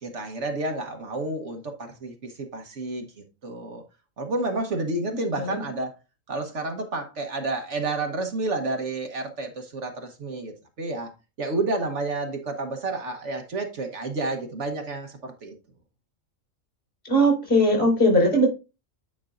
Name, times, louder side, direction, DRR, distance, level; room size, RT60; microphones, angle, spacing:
voice 1, 0.0-3.1 3.4-3.8 4.2-5.9 6.3-11.1 11.4-15.6, right 2 dB, 60° right, 1.4 m, -30 dB
voice 2, 17.0-18.5, equal, 50° left, 5.4 m, -19 dB
9.6 x 5.5 x 2.5 m
omnidirectional pair, 1.4 m